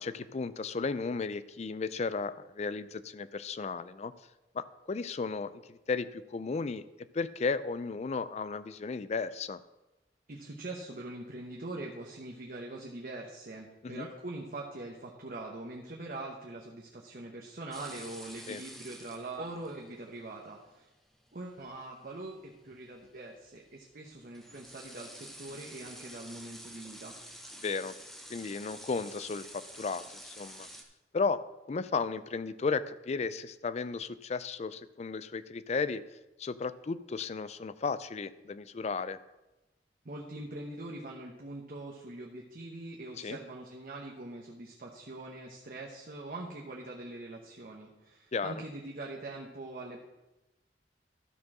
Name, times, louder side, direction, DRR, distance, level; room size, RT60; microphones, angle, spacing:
voice 1, 0.0-4.1 4.5-6.8 7.1-9.6 13.8-14.1 18.5-18.6 27.6-27.9 28.3-30.7 31.1-31.4 31.7-36.0 36.4-39.2 43.2-43.4 48.3-48.6, left 4 dB, 40° left, 15 dB, 0.4 m, -34 dB
voice 2, 10.3-20.9 21.3-27.1 40.0-50.0, right 2 dB, 55° right, -1 dB, 1.0 m, -43 dB
sound 1, 17.7-30.8, equal, ahead, 0.9 m, -50 dB
12.5 x 4.6 x 6.0 m, 1.0 s
head